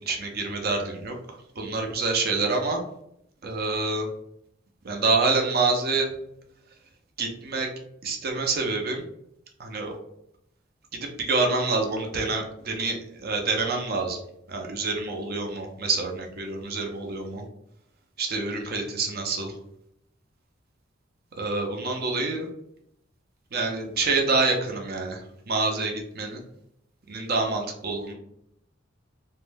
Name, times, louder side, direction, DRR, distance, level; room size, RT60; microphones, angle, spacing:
voice 1, 0.1-1.1 1.6-2.8 3.4-4.1 4.8-6.1 7.2-7.7 8.0-9.0 9.6-10.0 10.9-14.2 14.5-17.5 18.2-19.5 21.4-22.5 23.5-25.2 25.5-26.4 27.1-28.1, right 3 dB, 55° right, 2 dB, 0.5 m, -27 dB
2.6 x 2.1 x 3.3 m, 0.75 s
head